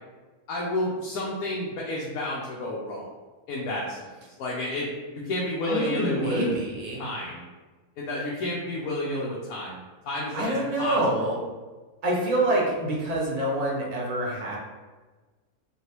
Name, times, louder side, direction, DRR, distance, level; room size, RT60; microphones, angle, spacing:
voice 1, 0.5-3.1 3.5-4.1 4.4-4.9 5.1-6.5 7.0-7.5 8.0-11.0, left 1 dB, 85° left, -4 dB, 1.1 m, -30 dB
voice 2, 5.7-7.1 10.3-11.4 12.0-14.6, right 1 dB, 40° right, -4 dB, 0.6 m, -26 dB
3.3 x 2.5 x 2.9 m, 1.3 s
omnidirectional pair, 1.5 m